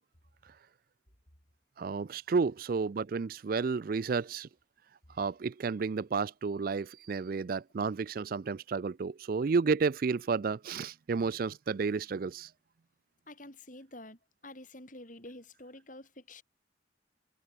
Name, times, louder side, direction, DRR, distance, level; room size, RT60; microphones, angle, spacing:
voice 1, 1.8-4.5 5.2-12.5, right 5 dB, 45° right, 0.4 m, -31 dB
voice 2, 13.3-16.4, left 1 dB, 40° left, 6.1 m, -49 dB
head